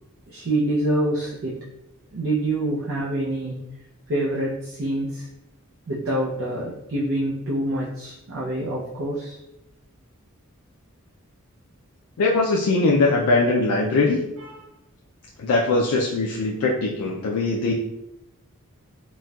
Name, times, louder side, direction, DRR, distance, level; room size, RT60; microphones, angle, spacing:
voice 1, 0.3-1.6 2.1-3.6 4.1-5.3 5.9-9.4 14.4-14.6, right 1 dB, 65° right, -6 dB, 0.5 m, -26 dB
voice 2, 12.2-14.2 15.4-17.7, left 3 dB, 85° left, -2 dB, 0.4 m, -21 dB
4.1 x 2.2 x 2.3 m, 0.86 s
head